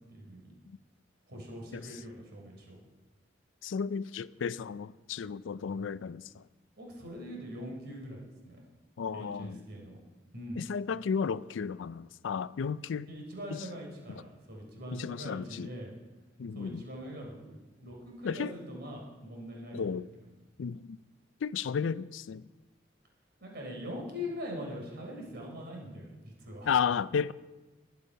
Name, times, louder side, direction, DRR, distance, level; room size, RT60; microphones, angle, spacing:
voice 1, 0.1-0.5 1.3-2.8 6.8-8.6 9.1-10.0 10.3-10.6 13.1-15.9 16.5-20.0 23.4-26.7, equal, 60° right, 3.8 m, -42 dB
voice 2, 3.6-6.5 9.0-9.6 10.6-13.1 14.1-14.2 14.9-15.7 16.4-16.8 18.2-18.5 19.7-20.1 20.6-21.0 21.4-22.5 26.7-27.3, left 6 dB, 75° left, 0.4 m, -33 dB
20.5 x 6.9 x 5.6 m
head